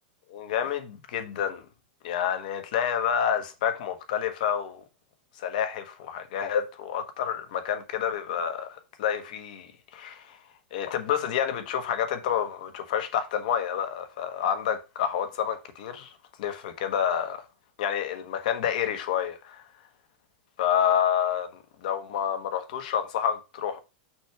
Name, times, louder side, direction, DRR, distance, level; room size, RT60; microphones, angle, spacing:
voice 1, 0.3-1.6 2.0-4.8 5.4-10.4 10.7-16.1 16.4-17.4 17.8-19.6 20.6-21.5 21.8-23.8, left 9 dB, 60° left, 1.3 m, -28 dB
6.0 x 3.4 x 5.9 m
supercardioid pair, 165°, 5 cm